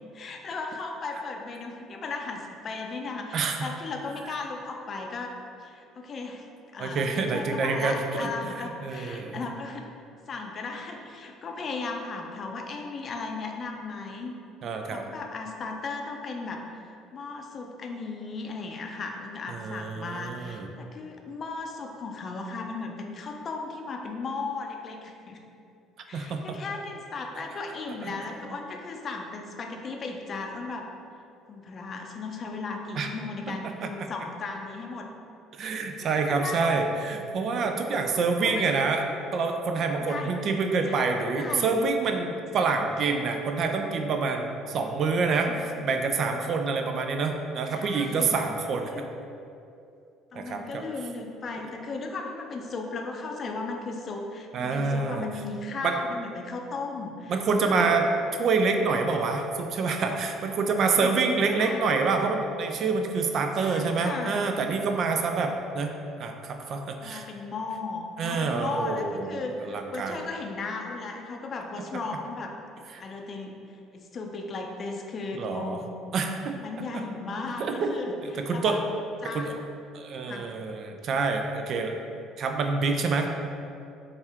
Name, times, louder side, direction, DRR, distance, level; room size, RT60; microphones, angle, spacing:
voice 1, 0.1-5.3 5.6-6.5 6.7-9.9 10.3-14.3 14.9-25.4 26.1-30.9 31.5-35.1 36.0-36.8 37.9-38.9 40.1-40.4 40.9-41.8 42.8-43.0 45.2-45.6 47.7-48.3 48.8-49.1 50.3-57.9 60.8-61.1 61.4-61.8 63.6-64.4 67.0-72.5 73.0-73.6 73.9-75.9 76.6-78.1 78.5-78.8 79.2-79.5 80.2-80.5, left 3 dB, 45° left, 2 dB, 0.5 m, -36 dB
voice 2, 3.3-3.7 6.8-9.4 14.6-15.0 19.5-20.7 26.1-26.6 28.0-28.2 33.0-33.1 33.6-33.9 35.5-39.0 39.3-49.1 50.3-50.8 54.5-55.3 55.8-56.0 57.3-58.1 58.4-67.3 68.2-70.2 72.9-73.0 75.3-75.8 76.1-76.6 76.9-77.0 77.6-78.8 79.2-79.5 79.9-82.0 82.4-83.3, right 4 dB, 55° right, 4 dB, 0.3 m, -27 dB
4.3 x 2.4 x 3.3 m, 2.6 s
hypercardioid pair, 65°, 0 cm